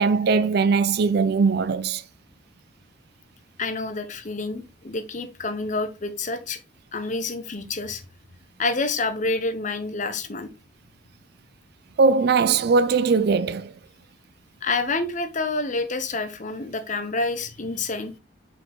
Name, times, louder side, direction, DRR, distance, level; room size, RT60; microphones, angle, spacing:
voice 1, 0.0-2.0 12.0-13.7, right 4 dB, 55° right, 0.4 m, -20 dB
voice 2, 3.6-6.6 6.9-8.0 8.6-10.5 14.6-18.1, left 3 dB, 40° left, 0.8 m, -28 dB
5.3 x 5.2 x 3.4 m
head